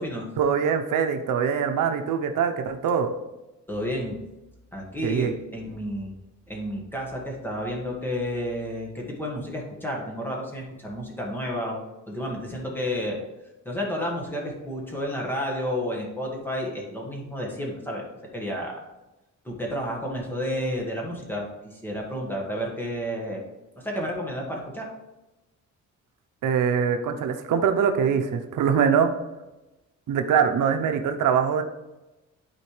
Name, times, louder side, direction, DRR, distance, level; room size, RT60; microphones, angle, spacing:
voice 1, 0.4-3.1 5.0-5.3 26.4-29.1 30.1-31.6, right 7 dB, 85° right, 7 dB, 0.8 m, -23 dB
voice 2, 3.7-4.2 4.7-6.1 6.5-11.8 12.1-13.2 13.6-18.0 18.3-18.8 19.4-23.4 23.8-24.9, equal, 5° left, -2 dB, 1.5 m, -31 dB
11.5 x 4.3 x 3.2 m, 1.0 s
wide cardioid pair, 170°, 31 cm